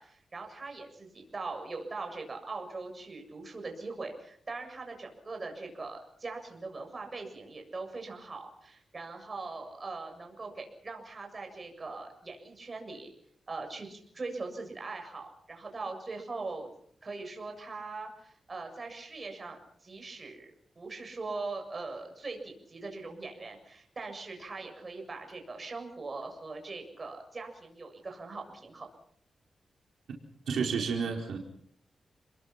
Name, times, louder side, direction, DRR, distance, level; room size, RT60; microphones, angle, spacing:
voice 1, 0.0-13.1 13.5-16.7 17.0-20.5 20.8-28.9, right 3 dB, 35° right, 4 dB, 7.1 m, -41 dB
voice 2, 30.5-31.4, right 5 dB, 90° right, 0 dB, 4.5 m, -30 dB
29.5 x 21.5 x 5.9 m, 0.66 s
wide cardioid pair, 110°, 0 cm